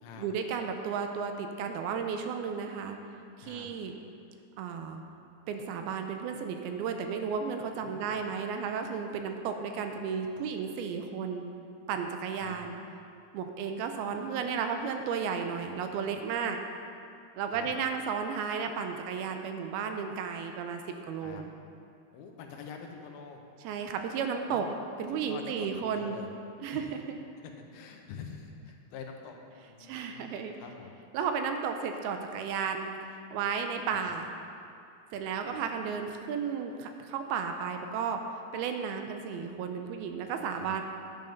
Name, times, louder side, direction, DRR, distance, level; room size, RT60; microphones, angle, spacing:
voice 1, 0.1-3.0 3.4-3.9 4.6-5.0 5.5-11.4 11.9-12.8 13.3-16.6 17.4-21.5 23.6-24.7 25.0-26.2 26.6-27.2 29.6-30.5 31.1-32.9 33.3-34.3 35.1-38.2 38.5-40.8, right 6 dB, 85° right, 5 dB, 2.5 m, -33 dB
voice 2, 7.8-8.3 12.4-12.6 14.1-14.5 17.5-17.7 21.2-21.4 22.1-23.4 24.5-24.8 25.3-26.3 26.7-26.9 27.7-29.4 29.6-31.0 33.9-34.1 35.5-35.6 40.6-40.7, left 6 dB, 75° left, 2 dB, 2.7 m, -46 dB
10.5 x 7.8 x 5.3 m, 2.5 s
omnidirectional pair, 4.5 m